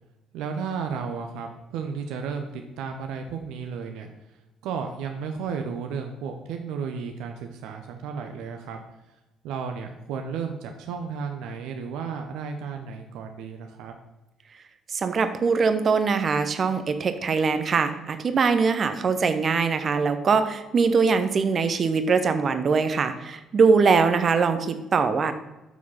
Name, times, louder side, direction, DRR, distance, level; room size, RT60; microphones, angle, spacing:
voice 1, 0.3-4.1 4.6-8.8 9.4-13.9, right 6 dB, 70° right, 4 dB, 0.8 m, -33 dB
voice 2, 14.9-25.3, right 5 dB, 45° right, 9 dB, 1.0 m, -22 dB
7.1 x 6.1 x 5.6 m, 1.0 s
hypercardioid pair, 50°, 0 cm